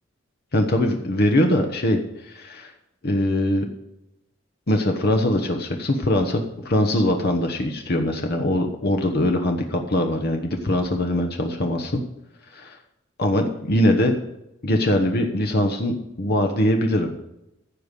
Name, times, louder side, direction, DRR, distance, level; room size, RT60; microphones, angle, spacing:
voice 1, 0.5-2.7 3.0-3.7 4.7-12.0 12.5-12.8 13.2-14.1 14.6-17.1, left 1 dB, 50° left, 4 dB, 1.1 m, -22 dB
15.0 x 5.4 x 8.3 m, 0.88 s
head